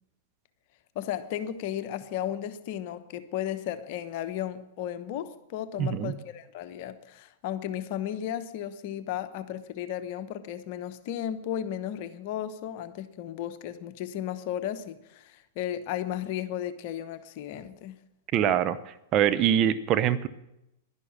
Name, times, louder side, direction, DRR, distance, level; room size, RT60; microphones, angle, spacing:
voice 1, 0.9-18.0, left 10 dB, 50° left, 1.0 m, -34 dB
voice 2, 5.8-6.1 18.3-18.8 19.1-20.3, right 10 dB, 35° right, 0.8 m, -23 dB
11.5 x 11.0 x 7.3 m
hypercardioid pair, 105°, 0 cm